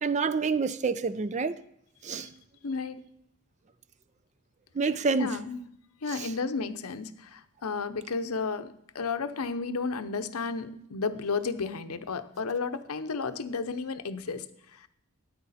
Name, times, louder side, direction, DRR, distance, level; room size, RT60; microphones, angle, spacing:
voice 1, 0.0-1.6 2.0-2.3 4.7-5.3 6.1-6.3, right 4 dB, 30° right, 0.4 m, -28 dB
voice 2, 2.6-3.0 5.2-5.6 6.0-14.9, left 4 dB, 75° left, 0.7 m, -33 dB
13.5 x 9.4 x 4.2 m
head